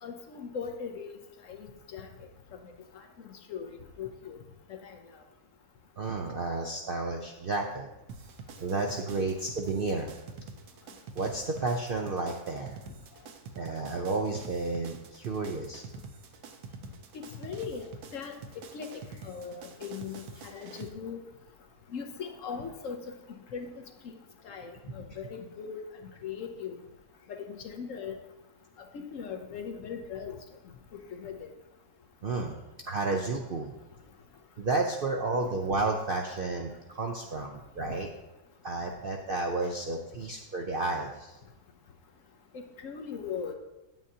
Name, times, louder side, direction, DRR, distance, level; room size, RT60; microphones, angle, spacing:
voice 1, 0.0-1.1 1.5-2.1 3.2-4.4 4.7-5.0 17.4-17.9 18.1-18.4 18.7-18.9 19.2-21.2 21.9-23.0 23.5-24.1 24.4-25.9 26.2-26.8 27.3-28.2 28.9-30.4 31.2-31.5 35.4-35.5 37.8-37.9 42.8-43.5, left 6 dB, 60° left, 5 dB, 1.0 m, -39 dB
voice 2, 6.0-7.9 8.6-10.1 11.1-12.8 13.6-15.8 32.2-32.6 32.9-33.7 34.6-38.1 38.6-41.3, right 3 dB, 60° right, 2 dB, 0.6 m, -31 dB
sound 1, 8.1-20.9, right 5 dB, 85° right, 1.3 m, -46 dB
9.0 x 8.8 x 2.8 m, 0.98 s
omnidirectional pair, 1.6 m